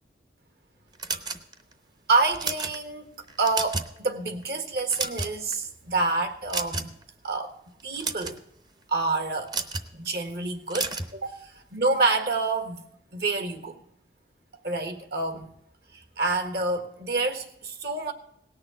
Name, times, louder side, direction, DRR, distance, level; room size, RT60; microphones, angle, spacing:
sound 1, 1.0-1.7 2.2-2.8 3.3-4.0 4.3-4.4 4.8-5.5 6.5-7.0 7.8-8.4 9.5-9.9 10.7-11.1, right 3 dB, 25° right, 0.7 m, -31 dB
voice 1, 2.1-3.1 3.4-6.9 7.2-7.5 7.8-8.4 8.9-9.5 9.9-12.9 13.1-13.8 14.6-15.5 16.2-18.1, right 3 dB, 65° right, 8 dB, 1.7 m, -27 dB
18.0 x 6.5 x 7.7 m, 0.74 s
head